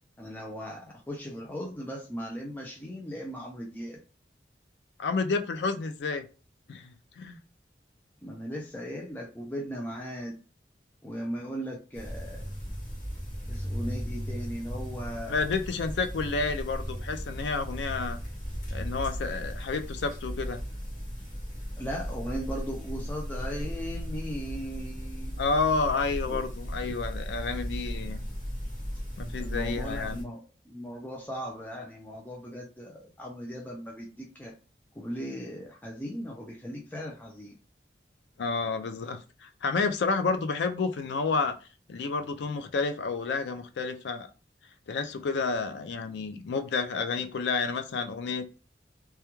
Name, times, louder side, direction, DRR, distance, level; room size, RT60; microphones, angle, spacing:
voice 1, 0.2-4.0 8.2-10.4 11.0-12.4 13.5-15.4 21.8-25.4 26.2-26.4 29.4-30.4 30.7-34.5 35.0-37.5, equal, 10° left, -1 dB, 0.4 m, -38 dB
voice 2, 5.0-6.2 6.7-7.4 15.3-18.2 18.7-20.6 25.4-28.2 29.2-30.3 38.4-41.5 41.9-44.3 44.9-48.6, left 4 dB, 80° left, 8 dB, 0.4 m, -30 dB
sound 1, 11.9-30.2, equal, 40° left, 0.9 m, -36 dB
2.2 x 2.2 x 2.9 m, 0.34 s
head